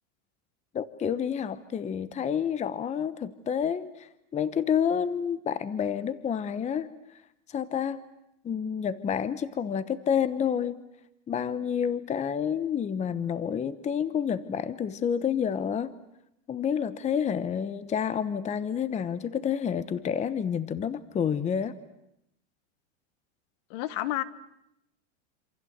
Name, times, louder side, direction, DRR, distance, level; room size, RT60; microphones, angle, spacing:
voice 1, 0.7-6.9 7.5-8.0 8.4-10.8 11.3-15.9 16.5-21.8, left 8 dB, 20° left, 15 dB, 1.0 m, -29 dB
voice 2, 23.7-24.2, left 15 dB, 55° left, 15 dB, 1.6 m, -30 dB
27.0 x 27.0 x 8.0 m, 0.81 s
supercardioid pair, 135°, 36 cm